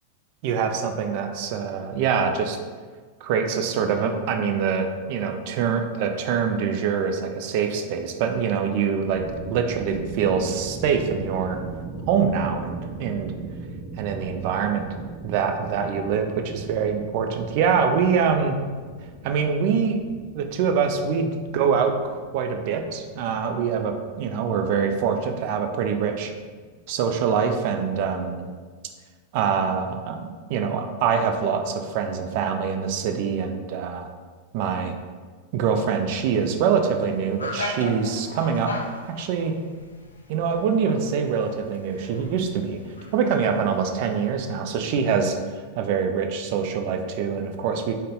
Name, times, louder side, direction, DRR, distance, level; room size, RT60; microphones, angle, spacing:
voice 1, 0.4-2.6 3.2-9.2 9.5-11.6 12.1-13.3 14.0-15.0 15.2-18.6 19.2-20.0 20.3-26.3 26.9-28.5 29.3-34.1 34.5-35.0 35.5-38.7 39.0-39.6 40.3-42.8 43.1-47.9, right 6 dB, 45° right, 6 dB, 0.4 m, -24 dB
sound 1, 8.8-27.6, right 3 dB, 20° right, 0.7 m, -40 dB
sound 2, 36.1-44.3, left 2 dB, 75° left, 0.4 m, -38 dB
5.2 x 2.1 x 3.8 m, 1.5 s
figure-of-eight pair, 90°, 0 cm